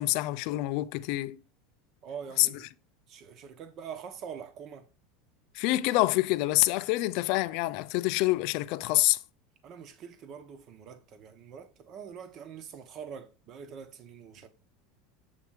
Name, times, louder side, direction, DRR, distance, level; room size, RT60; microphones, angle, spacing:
voice 1, 0.0-1.4 2.4-2.5 5.5-9.2, left 18 dB, 60° left, 0.4 m, -26 dB
voice 2, 2.0-2.7 3.1-4.9 9.6-14.5, right 7 dB, 45° right, 1.1 m, -44 dB
7.5 x 3.3 x 4.7 m
supercardioid pair, 120°, 0 cm